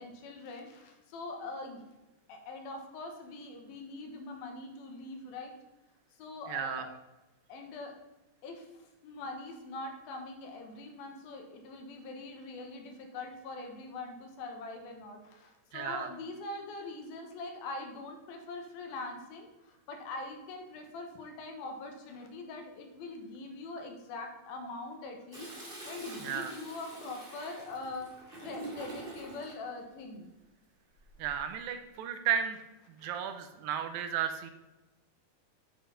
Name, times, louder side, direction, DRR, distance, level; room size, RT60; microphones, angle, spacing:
voice 1, 0.0-1.8 2.3-5.6 6.2-7.0 7.5-8.0 8.4-28.1 28.4-30.3 33.0-33.1, left 2 dB, 85° left, 4 dB, 3.1 m, -43 dB
voice 2, 6.5-6.8 15.7-16.1 26.2-26.5 31.2-32.6 33.0-34.5, right 8 dB, 80° right, 8 dB, 2.4 m, -33 dB
Toilet flush, 25.3-29.6 31.0-31.5, right 2 dB, 20° right, 1.5 m, -46 dB
9.0 x 5.3 x 5.8 m, 1.0 s
omnidirectional pair, 4.2 m